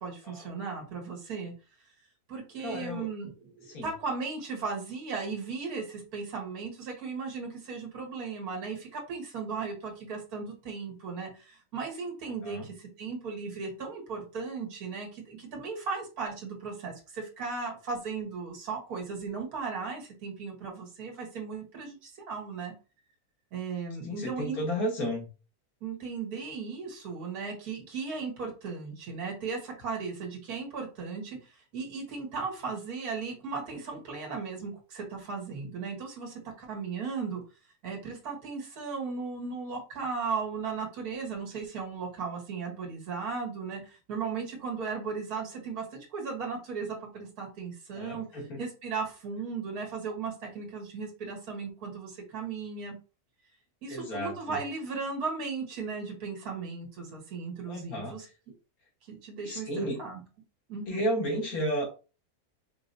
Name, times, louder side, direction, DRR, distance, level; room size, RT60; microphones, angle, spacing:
voice 1, 0.0-1.5 2.3-22.7 23.5-24.6 25.8-37.4 37.8-48.3 48.6-52.9 53.8-58.2 59.1-60.2 60.7-61.0, right 5 dB, 80° right, 0 dB, 1.8 m, -36 dB
voice 2, 2.6-3.1 3.7-3.9 12.4-12.7 24.0-25.3 47.9-48.6 53.9-54.6 57.7-58.3 59.4-60.0 60.9-61.9, equal, 75° left, -2 dB, 1.9 m, -33 dB
4.7 x 3.2 x 2.6 m, 0.33 s
omnidirectional pair, 1.6 m